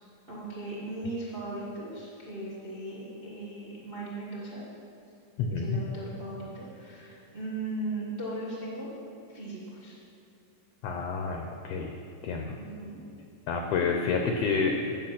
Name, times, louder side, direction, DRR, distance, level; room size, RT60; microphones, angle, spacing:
voice 1, 0.3-4.6 5.5-8.9 9.3-9.9 12.6-13.0, right 2 dB, 75° right, -5 dB, 0.5 m, -38 dB
voice 2, 5.4-5.8 10.8-11.9 12.2-12.5 13.5-14.8, left 5 dB, 75° left, 2 dB, 1.5 m, -29 dB
9.0 x 7.4 x 5.9 m, 2.6 s
omnidirectional pair, 3.5 m